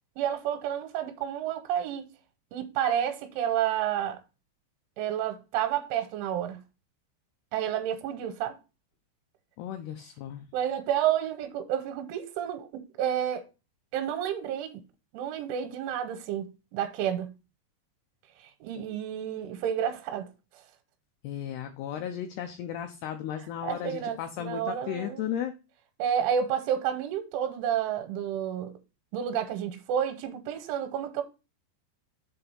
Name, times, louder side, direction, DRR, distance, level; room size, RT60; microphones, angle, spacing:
voice 1, 0.2-2.0 2.5-4.2 5.0-6.6 7.5-8.6 10.5-13.5 13.9-14.8 15.1-17.3 18.4-20.3 23.6-25.3 26.0-28.7 29.1-31.2, right 9 dB, 85° right, 3.2 m, -30 dB
voice 2, 9.6-10.4 21.2-25.5, left 10 dB, 90° left, 2.2 m, -35 dB
7.6 x 3.4 x 5.5 m
omnidirectional pair, 5.4 m